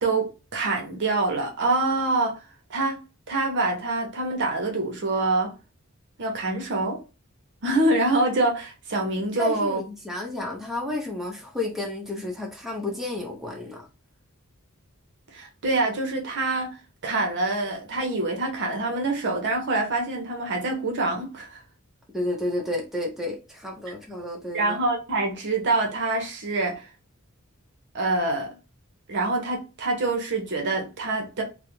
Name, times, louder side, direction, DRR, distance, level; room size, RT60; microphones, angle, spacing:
voice 1, 0.0-2.4 2.7-3.0 3.3-5.5 6.2-7.0 7.6-9.8 15.3-16.8 17.0-21.6 24.5-26.9 27.9-28.5 29.1-31.4, right 2 dB, 55° right, 0.7 m, -25 dB
voice 2, 9.4-13.9 22.1-24.8, left 2 dB, ahead, 0.6 m, -31 dB
2.4 x 2.0 x 2.9 m
head